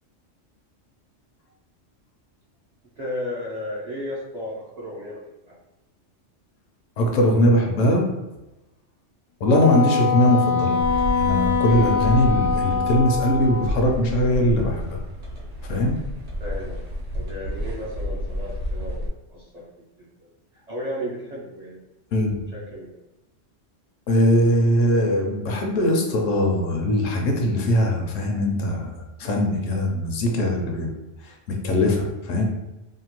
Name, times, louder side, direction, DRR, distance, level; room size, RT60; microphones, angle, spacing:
voice 1, 3.0-5.6 16.4-16.8 17.1-19.6 20.0-20.3 20.5-21.8 22.5-23.0, left 1 dB, 50° right, -7 dB, 0.5 m, -34 dB
voice 2, 7.0-8.0 9.4-15.0 15.7-16.0 22.1-22.4 24.1-28.9 29.2-30.9 31.5-32.4, left 1 dB, 85° left, 1 dB, 1.0 m, -21 dB
Wind instrument woodwind instrument, 9.5-13.9, left 5 dB, 60° left, 0.6 m, -23 dB
sound 1, 10.8-19.1, equal, 65° right, 0.9 m, -30 dB
2.8 x 2.2 x 2.9 m, 1.0 s
omnidirectional pair, 1.3 m